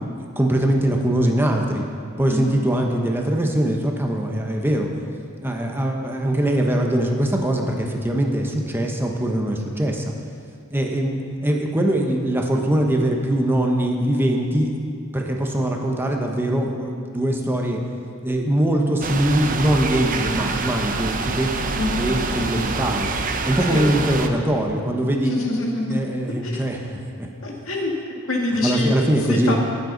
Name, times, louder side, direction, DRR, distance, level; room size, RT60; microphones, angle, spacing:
voice 1, 0.2-1.8 2.2-4.9 5.4-10.1 10.7-14.7 15.1-17.8 18.2-21.6 21.9-23.1 23.4-25.3 25.8-27.3 28.6-29.6, right 1 dB, 10° right, 1 dB, 0.9 m, -22 dB
voice 2, 2.3-2.7 21.8-22.2 23.7-23.9 25.3-26.0 26.4-26.6 27.4-27.9 28.3-28.9 29.3-29.6, left 2 dB, 80° left, -1 dB, 1.9 m, -25 dB
sound 1, 19.0-24.3, right 4 dB, 40° right, 0.7 m, -26 dB
17.5 x 7.9 x 3.9 m, 2.3 s
head